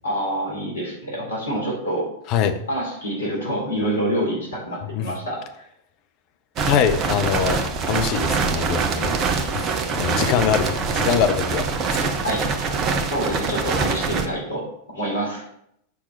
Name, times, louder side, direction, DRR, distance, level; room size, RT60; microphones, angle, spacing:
voice 1, 0.0-2.1 2.7-5.4 12.2-12.4 13.1-14.6 14.9-15.4, right 1 dB, 75° left, -3 dB, 3.7 m, -26 dB
voice 2, 2.3-2.6 4.9-5.1 6.7-7.6 7.9-11.6 12.0-12.2, left 8 dB, 40° left, 7 dB, 0.9 m, -23 dB
sound 1, 6.6-14.3, right 5 dB, 35° right, 1.0 m, -24 dB
8.5 x 5.9 x 4.0 m, 0.74 s
figure-of-eight pair, 90°, 0 cm